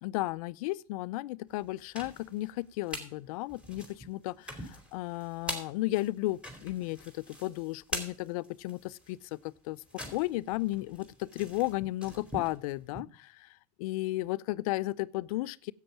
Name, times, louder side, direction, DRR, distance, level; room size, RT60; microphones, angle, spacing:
voice 1, 0.0-9.8 10.1-13.5 13.8-15.7, left 18 dB, 65° left, 0.5 m, -34 dB
sound 1, 1.6-3.1 3.5-13.0, left 1 dB, 5° right, 2.8 m, -43 dB
10.5 x 8.3 x 6.9 m
hypercardioid pair, 100°, 19 cm